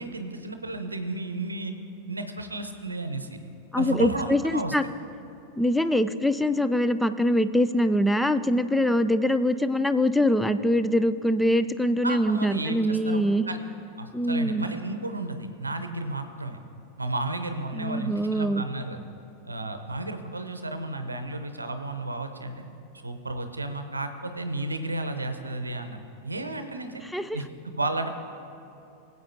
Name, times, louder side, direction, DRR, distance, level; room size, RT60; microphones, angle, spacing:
voice 1, 0.0-1.7 2.1-3.4 3.8-4.7 12.0-13.6 14.0-16.6 17.0-19.0 19.4-22.5 22.9-27.0 27.3-27.5 27.8-28.1, right 2 dB, 80° right, 8 dB, 0.7 m, -32 dB
voice 2, 3.7-4.8 5.6-13.5 14.1-14.7 17.7-18.6 27.1-27.4, left 1 dB, 5° left, 11 dB, 0.3 m, -23 dB
20.5 x 8.0 x 2.8 m, 2.8 s
figure-of-eight pair, 90°, 0 cm